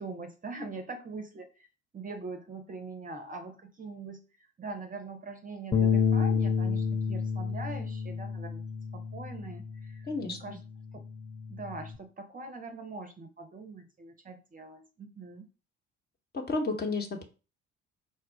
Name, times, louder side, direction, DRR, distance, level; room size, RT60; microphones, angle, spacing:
voice 1, 0.0-1.7 1.9-8.6 8.9-10.6 10.9-11.0 11.5-15.5, right 3 dB, 25° right, 6 dB, 0.7 m, -42 dB
Bass guitar, 5.7-10.2 10.6-12.0, left 6 dB, 15° left, 0.6 m, -30 dB
voice 2, 10.1-10.6 16.3-17.2, left 3 dB, 30° left, 3 dB, 1.1 m, -32 dB
4.3 x 2.3 x 4.7 m, 0.33 s
figure-of-eight pair, 50°, 33 cm